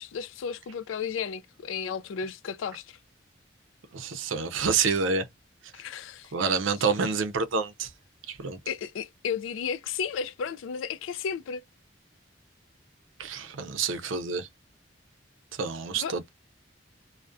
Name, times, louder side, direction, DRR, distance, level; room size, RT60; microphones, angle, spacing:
voice 1, 0.0-3.0 5.7-6.3 8.7-11.6 15.9-16.2, left 6 dB, 85° left, 0.3 m, -33 dB
voice 2, 3.9-5.3 6.3-7.9 8.3-8.6 13.2-14.5 15.6-16.3, right 5 dB, 85° right, 0.5 m, -28 dB
2.3 x 2.1 x 2.5 m
head